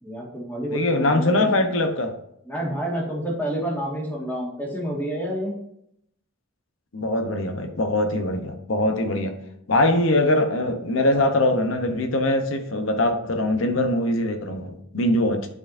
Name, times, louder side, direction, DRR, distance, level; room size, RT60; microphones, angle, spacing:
voice 1, 0.0-1.5 2.4-5.5, equal, 10° left, -4 dB, 1.7 m, -29 dB
voice 2, 0.7-2.1 6.9-9.4 9.7-15.5, left 1 dB, 75° left, 6 dB, 0.8 m, -22 dB
9.8 x 4.5 x 2.6 m, 0.75 s
head